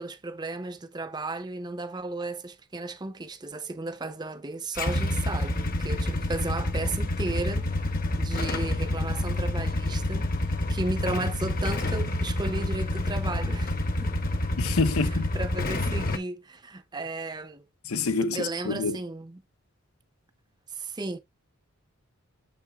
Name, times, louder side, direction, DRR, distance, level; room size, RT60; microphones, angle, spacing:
voice 1, 0.0-7.9 8.2-10.3 10.7-14.1 15.0-17.6 18.3-19.4 20.7-21.2, right 2 dB, 20° right, 0.5 m, -34 dB
Motorcycle / Engine starting / Idling, 4.8-16.2, left 1 dB, 40° left, 0.8 m, -28 dB
voice 2, 14.6-15.3 17.9-19.0, left 4 dB, 75° left, 0.8 m, -27 dB
7.3 x 5.8 x 2.3 m
head